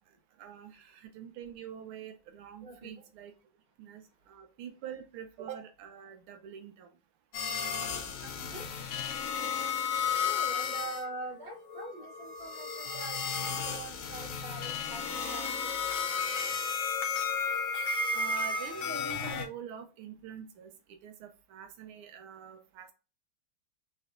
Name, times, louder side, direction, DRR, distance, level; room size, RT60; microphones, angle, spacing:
voice 1, 0.4-3.3 3.8-6.9 18.1-22.9, right 8 dB, 85° right, 1.6 m, -45 dB
sound 1, 7.3-11.0 11.4-19.5, left 5 dB, 65° left, 0.8 m, -33 dB
voice 2, 8.2-8.7 10.2-15.8, right 2 dB, 30° right, 1.8 m, -44 dB
4.1 x 3.9 x 2.5 m
omnidirectional pair, 2.3 m